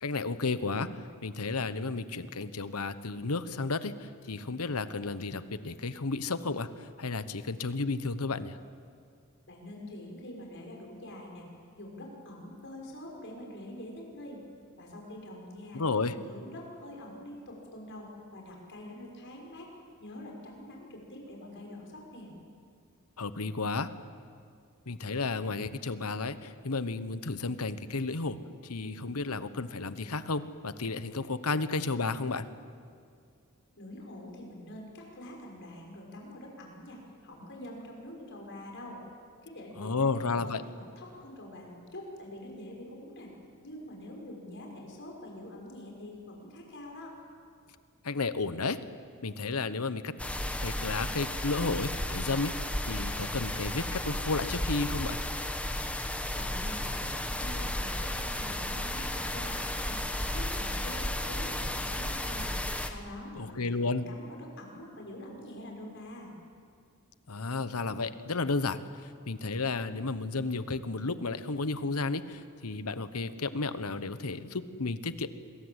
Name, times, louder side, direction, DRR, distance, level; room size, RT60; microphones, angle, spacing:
voice 1, 0.0-8.6 15.7-16.1 23.2-23.9 24.9-28.4 28.6-32.5 39.8-40.6 48.0-48.8 49.2-50.1 50.6-52.5 52.8-55.2 63.4-64.0 67.3-75.3, left 3 dB, 80° left, 12 dB, 1.1 m, -32 dB
voice 2, 9.5-11.5 11.7-14.4 14.8-15.8 16.1-19.7 20.0-22.3 33.8-39.0 39.4-43.3 43.6-47.1 56.3-60.0 60.3-62.5 62.8-66.3, left 1 dB, 55° left, 0 dB, 6.4 m, -45 dB
sound 1, 50.2-62.9, left 1 dB, 5° left, 1.3 m, -33 dB
27.0 x 21.5 x 8.2 m, 2.2 s
head